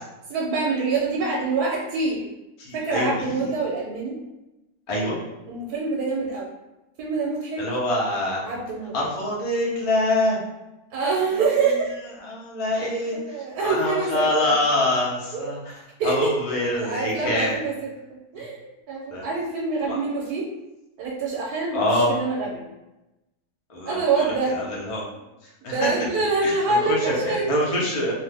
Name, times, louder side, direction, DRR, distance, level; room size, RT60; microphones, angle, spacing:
voice 1, 0.3-2.2 2.7-4.2 5.5-6.5 7.0-7.6 8.4-8.9 10.9-11.9 12.8-12.9 13.3-14.6 15.3-15.4 16.0-16.3 16.8-20.5 21.0-21.8 22.1-22.7 23.8-24.6 25.6-27.6, right 4 dB, 80° right, -3 dB, 1.1 m, -25 dB
voice 2, 2.6-3.5 4.9-5.2 7.6-8.4 8.9-10.4 11.3-11.8 12.2-17.6 18.3-18.4 19.1-19.2 19.8-20.1 21.7-22.1 23.7-25.0 25.6-26.0 26.4-28.1, left 1 dB, 60° left, -4 dB, 0.3 m, -25 dB
2.6 x 2.4 x 3.3 m, 0.98 s
omnidirectional pair, 1.7 m